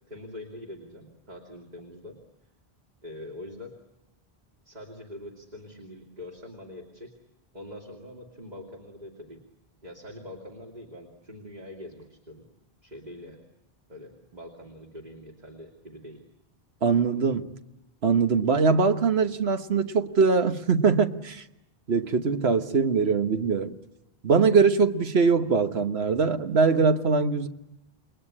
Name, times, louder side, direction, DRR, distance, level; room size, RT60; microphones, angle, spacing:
voice 1, 0.1-2.2 3.0-3.8 4.6-7.2 7.5-9.4 9.8-12.5 12.8-13.4 13.9-16.2, left 1 dB, 45° right, 2.8 m, -43 dB
voice 2, 16.8-17.5 18.0-21.4 21.9-23.8 24.2-27.5, right 5 dB, 80° right, 1.5 m, -22 dB
29.0 x 21.0 x 9.7 m
omnidirectional pair, 1.1 m